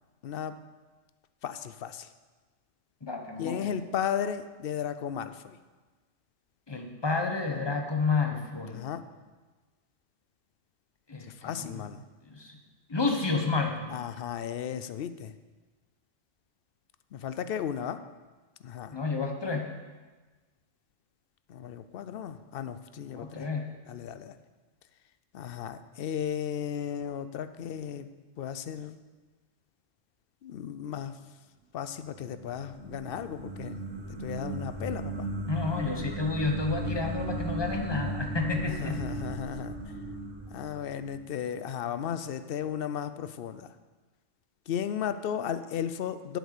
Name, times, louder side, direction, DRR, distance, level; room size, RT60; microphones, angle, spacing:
voice 1, 0.2-0.5 1.4-2.1 3.4-5.6 8.7-9.0 11.3-12.0 13.9-15.3 17.1-18.0 18.6-19.0 21.5-23.5 23.9-24.4 25.3-28.1 28.4-29.0 30.4-31.2 31.7-33.8 34.2-35.3 38.8-39.7 40.5-43.7 44.7-46.4, left 9 dB, 60° left, 12 dB, 0.6 m, -35 dB
voice 2, 3.0-3.7 6.7-8.8 11.1-11.8 12.3-12.6 12.9-13.9 18.9-19.7 23.1-23.7 35.5-39.0, left 4 dB, 20° left, 3 dB, 1.0 m, -30 dB
sound 1, 32.1-41.4, right 1 dB, 75° right, 1.8 m, -36 dB
8.1 x 7.9 x 6.6 m, 1.3 s
omnidirectional pair, 1.3 m